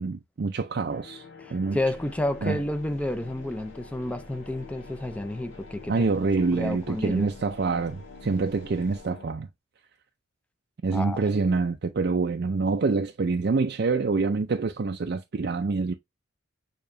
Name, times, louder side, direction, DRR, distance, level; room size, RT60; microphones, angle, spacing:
voice 1, 0.0-1.2 1.5-1.8 2.4-2.6 5.9-9.5 10.8-15.9, right 4 dB, 55° right, 0.4 m, -26 dB
sound 1, 0.9-9.3, left 5 dB, 90° left, 0.8 m, -47 dB
voice 2, 1.4-6.3 6.5-7.3 10.9-11.2, left 1 dB, 5° left, 0.4 m, -31 dB
sound 2, 1.7-9.1, equal, 40° left, 2.3 m, -50 dB
6.7 x 3.0 x 2.6 m
head